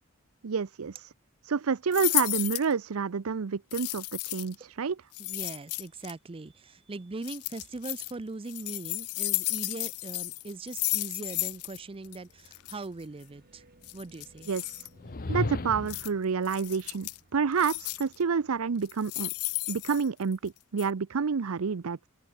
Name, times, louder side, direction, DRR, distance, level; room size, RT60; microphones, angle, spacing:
voice 1, 0.4-1.1 1.4-5.0 14.5-14.9 15.3-19.3 19.7-22.1, right 5 dB, 75° right, 0.6 m, -29 dB
sound 1, 1.9-2.7 3.7-4.6 5.1-6.1 7.2-8.1 8.5-11.8 12.0-12.2 12.5-12.7 13.8-14.9 15.9-16.1 16.5-17.2 17.6-18.2 18.8-20.5 20.8-20.9, left 23 dB, 85° left, 0.4 m, -33 dB
voice 2, 5.2-13.6 13.9-14.5 15.3-15.4, right 3 dB, 25° right, 0.5 m, -40 dB
sound 2, 10.2-20.4, right 1 dB, 45° right, 3.8 m, -63 dB
sound 3, 15.0-16.1, left 2 dB, 40° left, 0.9 m, -33 dB
head